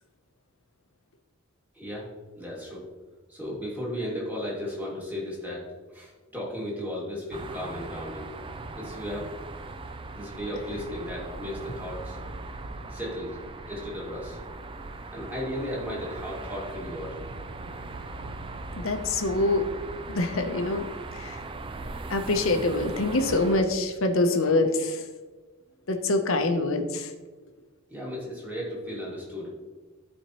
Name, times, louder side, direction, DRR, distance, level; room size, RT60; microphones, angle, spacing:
voice 1, 1.7-2.1 2.4-2.9 3.3-5.6 5.9-8.3 8.7-9.3 10.1-12.2 12.9-13.4 13.6-14.4 15.1-17.2 27.9-29.5, equal, 10° right, -6 dB, 2.2 m, -35 dB
sound 1, 7.3-23.6, right 3 dB, 25° right, 0.4 m, -40 dB
sound 2, 9.6-20.3, right 1 dB, 75° right, 0.8 m, -46 dB
voice 2, 18.8-19.7 20.1-20.9 21.1-21.4 22.1-25.0 25.9-27.1, left 2 dB, 70° left, 6 dB, 0.8 m, -25 dB
12.5 x 4.4 x 3.0 m, 1.3 s
head